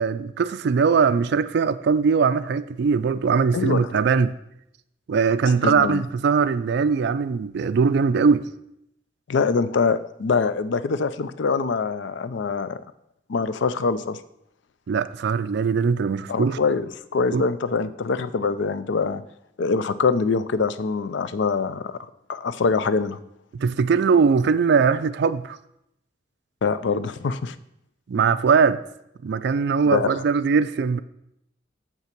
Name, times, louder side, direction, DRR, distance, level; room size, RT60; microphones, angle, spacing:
voice 1, 0.0-4.4 5.1-8.5 14.9-16.6 17.3-17.4 23.5-25.6 28.1-28.8 29.2-31.0, right 5 dB, 60° right, 0.3 m, -21 dB
voice 2, 5.6-6.0 9.3-12.8 13.3-14.2 16.3-19.2 19.6-22.0 22.3-23.2 26.6-27.6 29.9-30.1, left 4 dB, 65° left, 0.4 m, -24 dB
7.0 x 5.7 x 5.9 m
head